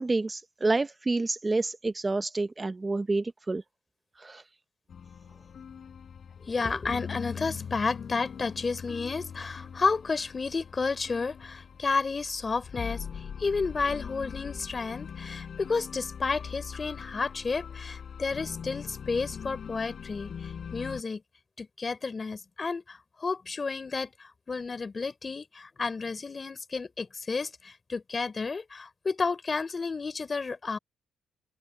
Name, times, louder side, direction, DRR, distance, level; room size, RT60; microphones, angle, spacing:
voice 1, 0.0-3.6 4.2-4.4, right 3 dB, 20° right, 0.7 m, -28 dB
sound 1, 4.9-21.0, left 7 dB, 50° left, 4.5 m, -41 dB
voice 2, 6.4-21.2 21.6-30.8, left 4 dB, 30° left, 3.4 m, -31 dB
cardioid pair, 90°, 0 cm